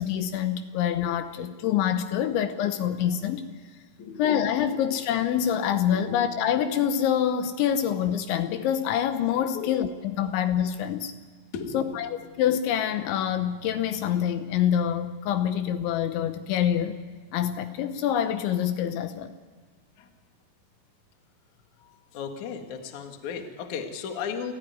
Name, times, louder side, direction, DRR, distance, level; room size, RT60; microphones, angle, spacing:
voice 1, 0.0-3.5 4.2-11.1 11.7-12.1 12.4-16.9 17.3-19.3, left 9 dB, 75° left, 9 dB, 3.0 m, -26 dB
voice 2, 1.3-1.6 4.0-5.0 5.9-6.2 9.5-9.8 11.5-12.4 20.0-20.1 21.8-24.5, left 6 dB, 55° left, 5 dB, 2.3 m, -37 dB
30.0 x 15.0 x 9.5 m, 1.5 s
omnidirectional pair, 5.9 m